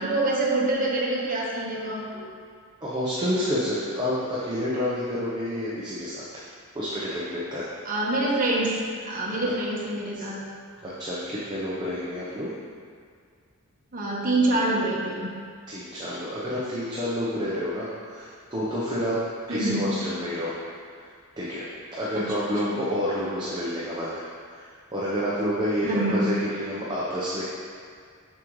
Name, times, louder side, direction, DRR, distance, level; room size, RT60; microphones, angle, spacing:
voice 1, 0.0-2.2 7.8-10.4 13.9-15.3 19.5-19.9 22.1-22.8 25.8-26.3, right 2 dB, 40° right, -4 dB, 1.2 m, -26 dB
voice 2, 2.8-6.2 6.7-7.7 9.4-9.5 10.8-12.5 15.7-19.2 19.5-20.6 21.4-27.4, equal, 20° right, -8 dB, 0.8 m, -29 dB
7.4 x 6.5 x 3.1 m, 2.1 s
head